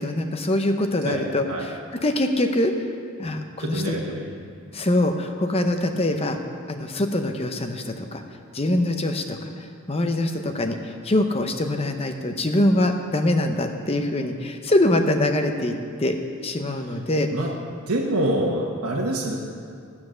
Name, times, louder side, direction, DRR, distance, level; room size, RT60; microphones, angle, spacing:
voice 1, 0.0-2.7 3.2-4.0 4.7-6.4 6.7-8.2 8.5-15.7 16.0-17.3, left 1 dB, 25° left, 6 dB, 0.7 m, -24 dB
voice 2, 1.0-1.7 3.6-4.3 17.3-17.5 17.9-19.4, right 1 dB, 90° right, -2 dB, 1.3 m, -26 dB
14.5 x 7.4 x 6.4 m, 2.3 s
head